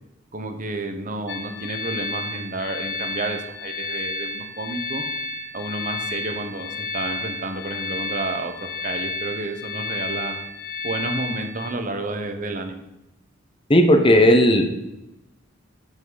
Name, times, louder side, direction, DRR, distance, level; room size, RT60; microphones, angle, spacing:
voice 1, 0.3-5.0 5.5-10.4 10.8-12.8, right 2 dB, 40° right, 6 dB, 1.0 m, -30 dB
sound 1, 1.3-11.7, left 3 dB, 60° left, 1.1 m, -31 dB
voice 2, 13.7-14.6, left 1 dB, 25° left, 5 dB, 1.0 m, -14 dB
12.0 x 6.0 x 4.1 m, 0.93 s
head